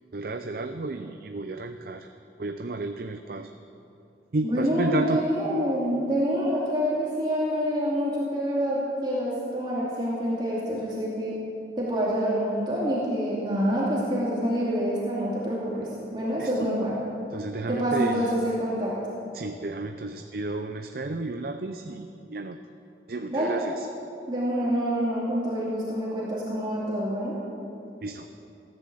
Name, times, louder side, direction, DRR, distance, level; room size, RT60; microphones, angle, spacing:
voice 1, 0.1-2.1 2.4-3.5 4.3-5.2 16.4-16.7 17.3-18.3 19.3-22.6 23.1-23.9 28.0-28.3, right 2 dB, 55° right, 7 dB, 0.6 m, -32 dB
voice 2, 4.4-11.4 11.8-15.9 16.1-17.0 17.7-18.9 23.3-23.5 24.3-27.4, equal, 25° right, -7 dB, 2.6 m, -27 dB
17.0 x 10.5 x 7.8 m, 2.7 s
head